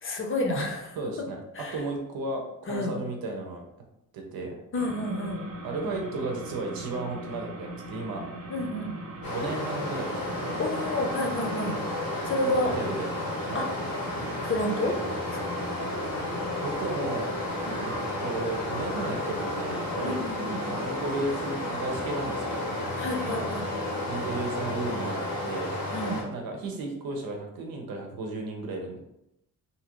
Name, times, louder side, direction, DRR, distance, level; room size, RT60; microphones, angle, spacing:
voice 1, 0.0-1.0 1.6-1.8 2.7-3.0 4.7-5.4 8.5-9.0 10.6-11.8 12.2-12.7 13.5-13.7 14.4-14.9 15.3-15.6 17.6-17.9 20.0-20.6 23.0-23.7 25.9-26.2, left 1 dB, 40° left, 1 dB, 0.6 m, -30 dB
voice 2, 1.0-1.4 1.7-3.6 4.1-4.5 5.6-8.2 9.3-10.5 12.4-13.1 13.5-13.7 16.6-17.3 17.8-17.9 18.2-20.2 20.7-22.8 23.2-23.5 24.1-25.7 26.3-29.0, right 2 dB, 90° right, 1 dB, 0.7 m, -34 dB
sound 1, 4.7-22.0, right 1 dB, 45° right, 0.6 m, -41 dB
Stream, 9.2-26.2, left 1 dB, 85° left, 1.2 m, -32 dB
2.8 x 2.5 x 2.9 m, 0.83 s
wide cardioid pair, 130°, 34 cm